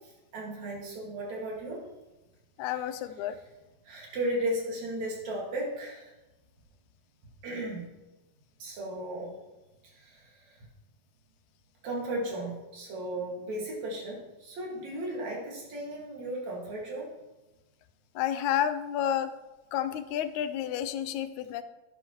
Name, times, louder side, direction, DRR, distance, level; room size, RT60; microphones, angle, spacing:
voice 1, 0.3-1.8 3.9-6.1 7.4-7.9 8.6-9.3 10.0-10.2 11.8-17.1, right 1 dB, 70° right, -2 dB, 3.4 m, -35 dB
voice 2, 2.6-3.4 18.2-19.3 19.7-21.6, left 10 dB, 85° left, 11 dB, 1.9 m, -30 dB
11.0 x 9.9 x 3.1 m, 1.0 s
omnidirectional pair, 3.4 m